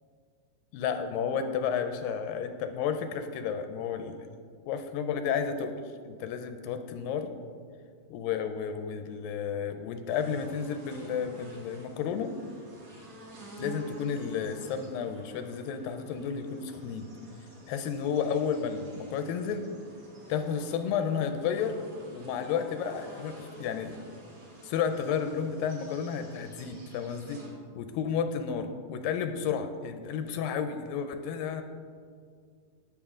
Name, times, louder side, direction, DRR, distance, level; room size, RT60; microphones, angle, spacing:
voice 1, 0.7-4.3 4.7-5.8 6.1-7.3 8.1-12.4 13.6-17.1 17.7-19.7 20.3-21.8 22.1-24.0 24.6-27.4 27.8-31.6, left 7 dB, 85° left, 8 dB, 2.3 m, -32 dB
sound 1, 10.1-27.5, right 1 dB, 45° right, 3.0 m, -50 dB
18.5 x 7.0 x 3.7 m, 2.1 s
omnidirectional pair, 4.1 m